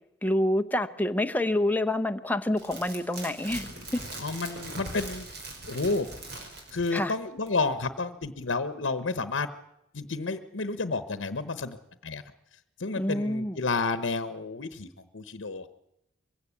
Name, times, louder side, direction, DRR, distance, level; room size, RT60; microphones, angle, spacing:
voice 1, 0.2-4.0 6.9-7.1 13.0-13.6, left 1 dB, 10° left, 6 dB, 0.8 m, -27 dB
sound 1, 2.6-7.2 7.5-7.6, right 2 dB, 60° right, 5.4 m, -41 dB
voice 2, 4.2-5.3 5.7-6.1 6.7-9.5 9.9-11.8 12.0-12.2 12.8-14.9 15.1-15.7, left 3 dB, 85° left, 12 dB, 1.0 m, -30 dB
22.5 x 16.0 x 8.4 m, 0.84 s
head